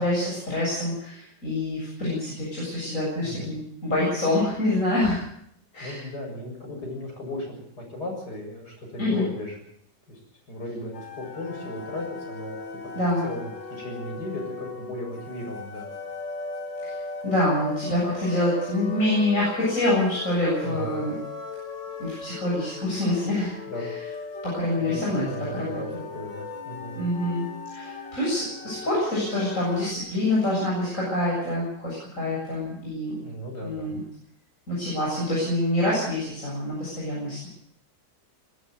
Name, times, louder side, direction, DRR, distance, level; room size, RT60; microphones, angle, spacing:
voice 1, 0.0-5.2 5.7-6.0 9.0-9.3 12.9-13.3 16.8-16.9 17.2-21.1 22.0-23.5 24.4-25.3 25.5-25.8 26.9-27.5 27.7-33.1 33.6-34.0 34.7-37.5, left 1 dB, 45° left, -6 dB, 8.3 m, -26 dB
voice 2, 3.2-3.5 5.8-9.6 10.1-10.2 10.5-12.6 12.9-15.9 20.6-20.9 23.7-23.9 24.8-27.0 33.2-33.9, left 1 dB, 65° left, 0 dB, 7.8 m, -36 dB
sound 1, 10.9-29.9, left 3 dB, 90° left, 3.0 m, -37 dB
20.5 x 13.0 x 9.5 m, 0.69 s
omnidirectional pair, 1.9 m